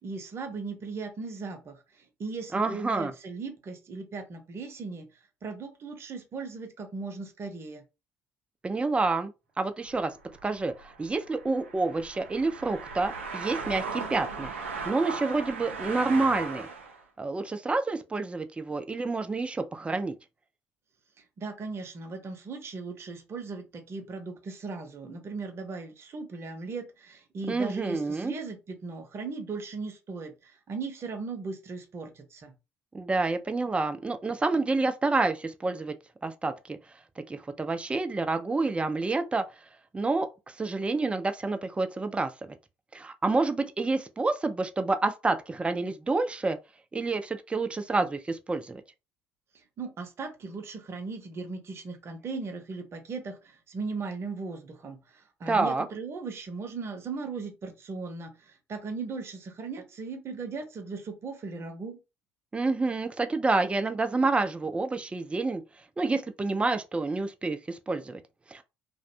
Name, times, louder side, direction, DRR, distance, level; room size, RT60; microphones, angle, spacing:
voice 1, 0.0-5.1 5.4-7.8 21.4-32.5 49.8-62.0, right 4 dB, 45° right, 0.8 m, -38 dB
voice 2, 2.5-3.1 8.6-9.3 9.6-10.1 10.4-14.5 14.8-16.7 17.2-20.2 27.5-28.3 32.9-36.0 36.2-36.8 37.3-39.4 39.9-42.3 42.9-46.6 46.9-48.8 55.5-55.9 62.5-65.6 66.0-68.2 68.5-68.6, right 3 dB, 20° right, 0.4 m, -28 dB
sound 1, 9.8-17.0, right 4 dB, 90° right, 0.4 m, -38 dB
2.4 x 2.1 x 2.6 m
hypercardioid pair, 55°, 6 cm